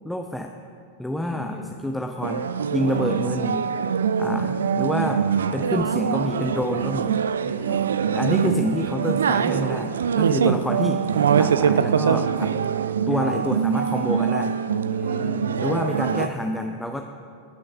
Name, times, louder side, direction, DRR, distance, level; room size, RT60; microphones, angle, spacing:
voice 1, 0.0-0.5 1.0-1.6 1.8-3.7 4.2-5.2 5.5-7.2 8.1-12.6 13.1-14.6 15.6-17.0, left 1 dB, 5° left, 3 dB, 0.5 m, -28 dB
voice 2, 1.2-1.7 2.9-3.0 7.4-7.8 10.2-10.5 13.1-13.4 14.9-16.3, left 1 dB, 25° left, -3 dB, 2.8 m, -38 dB
sound 1, 2.2-16.3, right 7 dB, 65° right, 0.3 m, -23 dB
19.0 x 6.4 x 4.5 m, 2.4 s
figure-of-eight pair, 90°, 0 cm